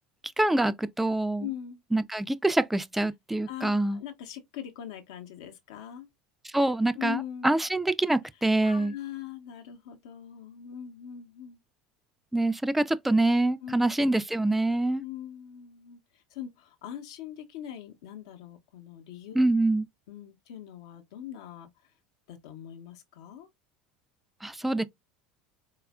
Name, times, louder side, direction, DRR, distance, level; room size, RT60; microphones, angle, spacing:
voice 1, 0.4-1.5 1.9-4.0 6.4-8.9 12.3-15.0 19.3-19.9 24.4-24.8, right 2 dB, 5° right, 0.3 m, -25 dB
voice 2, 1.4-1.8 3.5-6.1 6.9-7.5 8.6-11.6 13.6-13.8 15.0-19.5 20.1-21.7 22.3-23.5, left 11 dB, 70° left, 0.8 m, -41 dB
4.0 x 2.3 x 2.2 m
hypercardioid pair, 75°, 3 cm